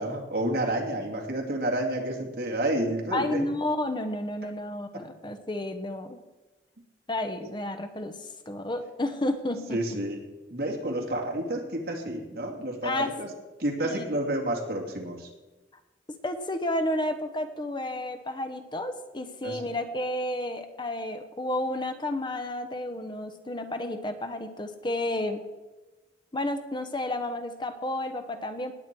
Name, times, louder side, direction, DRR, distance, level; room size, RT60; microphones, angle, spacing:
voice 1, 0.0-3.4 9.7-10.2 10.5-13.3 13.6-15.3 19.4-19.6, right 1 dB, 60° right, 0 dB, 2.7 m, -30 dB
voice 2, 3.1-6.2 7.1-8.2 8.5-10.0 12.8-13.1 13.8-14.4 16.1-25.4 26.3-28.7, left 1 dB, 25° left, 7 dB, 1.0 m, -31 dB
18.5 x 9.2 x 4.6 m, 1.1 s
head